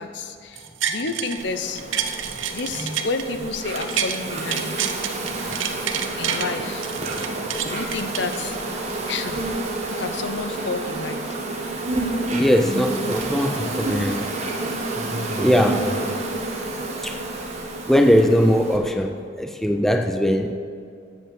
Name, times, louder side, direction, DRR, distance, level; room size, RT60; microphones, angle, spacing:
voice 1, 0.0-1.8 2.5-4.9 6.2-6.9 7.7-8.6 9.1-9.4 10.0-11.4, left 3 dB, 65° left, 9 dB, 0.7 m, -30 dB
sound 1, 0.6-1.4 1.8-4.2 4.5-6.5 6.8-8.8 9.3-9.4, right 8 dB, 80° right, 0.6 m, -28 dB
Insect, 1.4-18.8, right 2 dB, 35° right, 1.2 m, -29 dB
voice 2, 12.3-14.3 15.4-15.9 17.0-17.2 17.9-20.5, equal, ahead, 6 dB, 0.3 m, -20 dB
9.0 x 7.4 x 6.9 m, 2.4 s
head